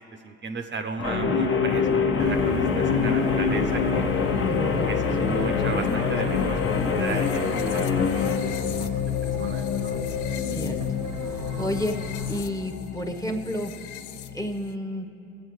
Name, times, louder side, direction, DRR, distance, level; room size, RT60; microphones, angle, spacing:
voice 1, 0.2-1.9 2.2-4.0 4.8-7.9 8.1-10.0, right 4 dB, 40° right, 5 dB, 0.6 m, -36 dB
Guitar, 1.0-8.4, left 3 dB, 40° left, 1.1 m, -27 dB
sound 1, 1.2-14.7, left 8 dB, 80° left, 0.5 m, -28 dB
sound 2, 2.2-12.4, right 5 dB, 85° right, 0.9 m, -36 dB
voice 2, 4.4-5.0 10.4-10.8 11.3-12.0 12.3-13.7 14.3-15.1, equal, 10° left, 3 dB, 1.0 m, -31 dB
22.5 x 7.9 x 3.1 m, 2.8 s
cardioid pair, 85°, 30 cm